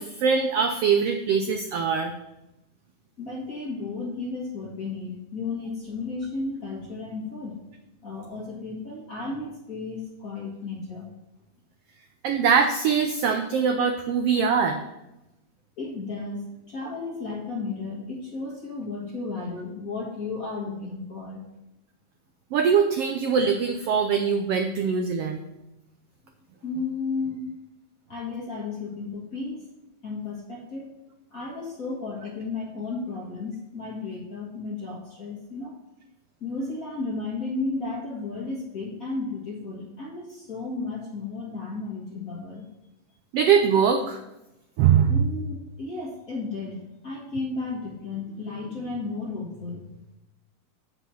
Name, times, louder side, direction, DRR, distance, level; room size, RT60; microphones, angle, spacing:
voice 1, 0.0-2.1 12.2-14.8 22.5-25.4 43.3-44.2 44.8-45.1, right 6 dB, 90° right, 6 dB, 1.3 m, -22 dB
voice 2, 3.2-7.6 8.0-11.1 15.8-21.4 26.6-27.5 28.1-29.7 30.0-30.9 31.3-35.7 36.4-42.7 45.1-49.8, left 3 dB, 40° left, -3 dB, 1.3 m, -33 dB
8.2 x 5.9 x 5.6 m, 0.93 s
omnidirectional pair, 3.5 m